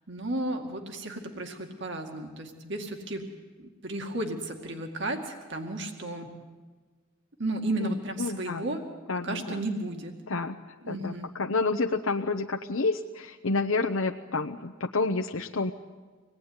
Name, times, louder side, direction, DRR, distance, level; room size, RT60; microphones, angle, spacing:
voice 1, 0.1-3.3 3.6-6.3 7.4-8.8 9.2-10.1 10.8-11.3, right 1 dB, 60° right, 4 dB, 2.3 m, -33 dB
voice 2, 7.8-8.6 9.1-9.6 10.3-15.7, left 3 dB, 85° left, 4 dB, 0.9 m, -29 dB
26.0 x 19.0 x 9.7 m, 1.4 s
head